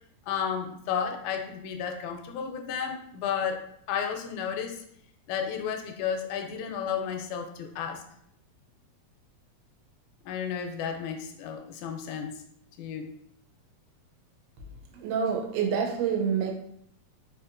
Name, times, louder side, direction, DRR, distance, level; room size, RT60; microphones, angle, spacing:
voice 1, 0.3-3.6 3.9-4.8 5.3-8.0 10.3-12.3 12.8-13.1, left 7 dB, 85° left, 1.9 m, -32 dB
voice 2, 15.0-16.5, right 7 dB, 90° right, 2.1 m, -27 dB
4.7 x 2.8 x 2.5 m
omnidirectional pair, 3.4 m